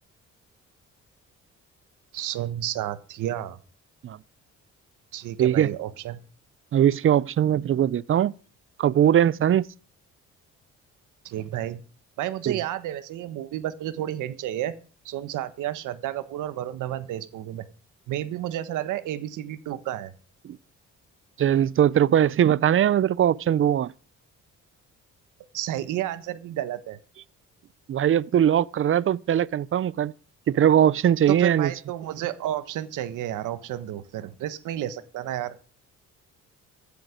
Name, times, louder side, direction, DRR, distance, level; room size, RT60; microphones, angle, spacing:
voice 1, 2.1-3.6 5.1-6.2 11.2-11.8 12.2-14.7 15.0-17.7 18.1-20.1 25.5-27.0 31.3-35.6, right 12 dB, 90° right, 1.3 m, -31 dB
voice 2, 5.4-5.7 6.7-8.3 8.8-9.7 12.5-12.6 20.4-20.6 21.4-23.9 27.9-30.1 30.5-31.7, right 10 dB, 45° right, 0.5 m, -20 dB
15.5 x 10.5 x 5.1 m
cardioid pair, 90°, 30 cm